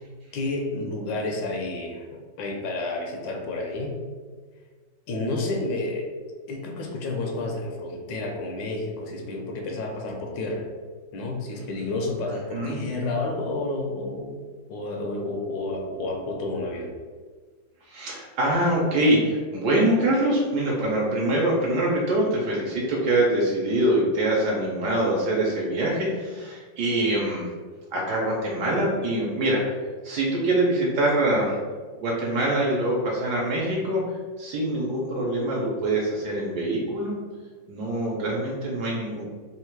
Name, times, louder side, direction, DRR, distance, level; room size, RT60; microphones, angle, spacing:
voice 1, 0.3-2.1 2.4-4.0 5.1-6.1 6.5-10.7 11.1-16.9, left 2 dB, 80° left, 2 dB, 1.3 m, -30 dB
voice 2, 17.9-27.5 27.9-29.8 30.0-31.6 32.0-37.1 37.7-39.2, right 1 dB, 70° right, -3 dB, 1.2 m, -24 dB
3.5 x 2.4 x 4.4 m, 1.5 s
omnidirectional pair, 2.0 m